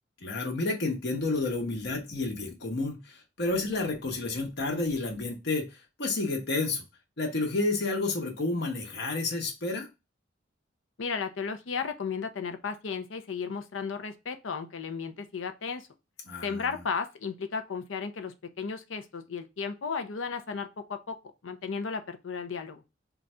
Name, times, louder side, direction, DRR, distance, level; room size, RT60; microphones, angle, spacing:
voice 1, 0.2-6.8 7.2-9.9 16.3-16.6, left 2 dB, 60° left, 1.1 m, -30 dB
voice 2, 11.0-15.9 16.4-21.2 21.4-22.8, left 5 dB, 85° left, 0.6 m, -34 dB
3.9 x 2.4 x 4.2 m
head